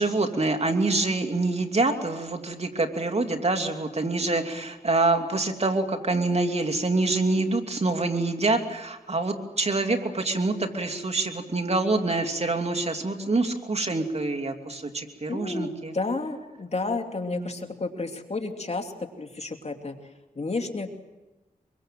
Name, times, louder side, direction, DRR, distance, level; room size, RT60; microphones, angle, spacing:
voice 1, 0.0-15.9 17.4-17.6, right 2 dB, 45° right, 5 dB, 2.9 m, -26 dB
voice 2, 15.3-18.9 19.2-20.0 20.3-20.9, left 3 dB, 45° left, 4 dB, 2.8 m, -31 dB
25.0 x 23.5 x 7.7 m, 1.1 s
cardioid pair, 50°, 15 cm